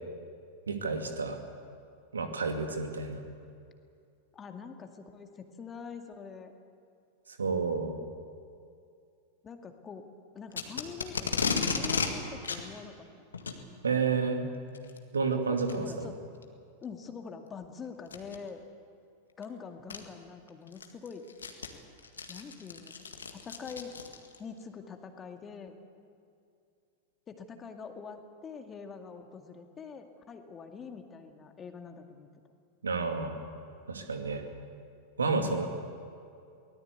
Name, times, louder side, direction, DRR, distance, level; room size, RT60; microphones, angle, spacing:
voice 1, 0.7-1.4 2.1-3.2 7.4-7.9 13.8-14.5 15.1-16.1 32.8-33.3 33.9-34.4 35.2-35.7, right 4 dB, 70° right, 5 dB, 2.4 m, -30 dB
voice 2, 4.3-6.5 9.4-10.1 10.3-13.1 15.5-16.2 16.8-18.6 19.4-21.2 22.3-23.1 23.3-24.0 24.4-25.8 27.3-32.3 35.3-35.7, left 5 dB, 20° left, 5 dB, 2.1 m, -44 dB
Packing tape duct tape, 10.5-12.1 12.4-12.6 13.3-13.6 14.7-15.0 15.7-15.8 16.4-16.5 18.1-18.4 19.4-19.5 19.9-20.0 20.5-24.4, left 5 dB, 70° left, 1.9 m, -33 dB
23.5 x 18.5 x 8.3 m, 2.4 s
figure-of-eight pair, 90°, 0 cm